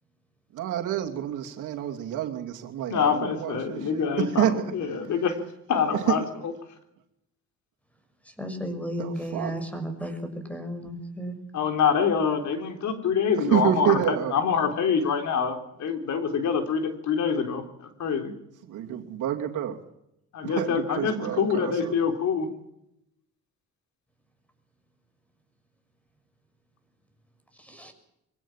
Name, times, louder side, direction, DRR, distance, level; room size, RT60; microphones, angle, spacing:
voice 1, 0.5-4.7 5.9-6.3 9.0-9.5 13.4-14.3 18.7-19.8 20.4-21.9, right 10 dB, 85° right, 3 dB, 2.8 m, -28 dB
voice 2, 2.9-5.4 5.7-6.5 11.5-18.3 20.3-22.5, left 6 dB, 70° left, 6 dB, 3.8 m, -26 dB
voice 3, 8.4-11.4 27.6-27.9, equal, 5° left, 8 dB, 6.2 m, -34 dB
24.0 x 17.0 x 7.4 m, 0.80 s
cardioid pair, 90°, 30 cm